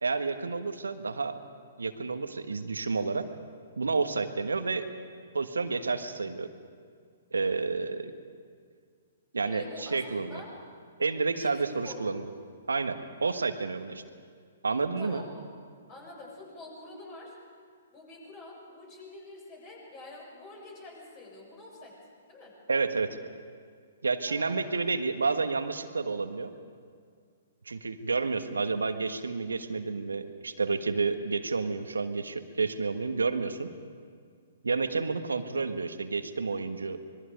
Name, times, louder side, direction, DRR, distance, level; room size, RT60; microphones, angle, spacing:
voice 1, 0.0-1.4 1.8-3.3 3.8-4.9 5.3-6.5 7.3-8.1 9.3-10.4 11.0-12.2 12.7-14.0 14.6-15.2 22.7-23.2 24.0-26.5 27.7-33.7 34.6-37.0, right 4 dB, 75° right, 9 dB, 1.4 m, -30 dB
voice 2, 9.4-10.5 11.3-11.5 11.8-12.1 15.0-15.5 15.9-17.4 17.9-22.0 22.3-22.5 24.2-24.9, left 2 dB, 30° left, -1 dB, 7.3 m, -46 dB
26.0 x 21.5 x 5.3 m, 2.1 s
figure-of-eight pair, 120°, 0 cm